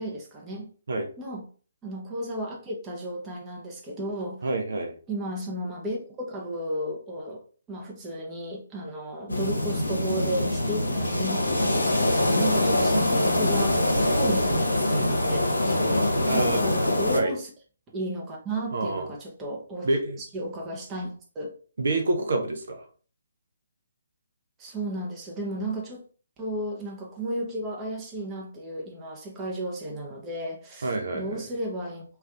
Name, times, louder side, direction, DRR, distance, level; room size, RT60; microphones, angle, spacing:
voice 1, 0.0-0.7 1.2-1.4 1.8-4.4 5.1-6.0 6.3-7.4 7.7-15.8 16.2-17.5 17.9-19.9 20.2-21.5 24.6-26.0 26.4-32.0, right 1 dB, 15° right, 0.7 m, -34 dB
voice 2, 4.4-4.9 16.2-16.6 17.1-17.3 18.7-19.1 19.8-20.2 21.8-22.9 30.8-31.5, right 2 dB, 60° right, 0.6 m, -27 dB
sound 1, 9.3-17.2, left 1 dB, 80° left, 0.6 m, -24 dB
2.5 x 2.3 x 3.4 m
figure-of-eight pair, 140°, 0 cm